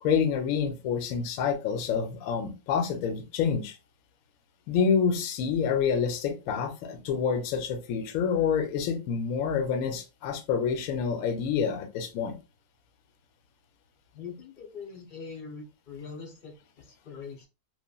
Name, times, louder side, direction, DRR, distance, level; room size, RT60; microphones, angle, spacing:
voice 1, 0.0-3.8 4.7-12.3, left 6 dB, 70° left, 0.9 m, -27 dB
voice 2, 14.1-17.5, left 5 dB, 45° left, 0.7 m, -43 dB
3.1 x 2.3 x 2.2 m
omnidirectional pair, 1.7 m